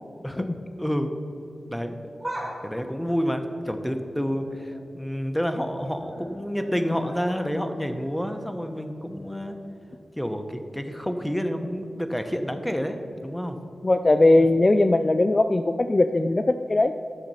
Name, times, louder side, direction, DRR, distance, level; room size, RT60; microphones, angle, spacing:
voice 1, 0.8-1.1 1.7-2.1 2.6-9.6 10.2-13.6, equal, 5° left, 7 dB, 0.9 m, -29 dB
sound 1, 2.2-4.8 5.2-5.7 6.0-9.9 10.2-10.3 11.3-11.4, right 1 dB, 10° right, 2.2 m, -42 dB
voice 2, 13.8-16.9, left 2 dB, 35° left, 9 dB, 0.3 m, -19 dB
12.0 x 6.5 x 5.6 m, 2.6 s
wide cardioid pair, 70°, 0 cm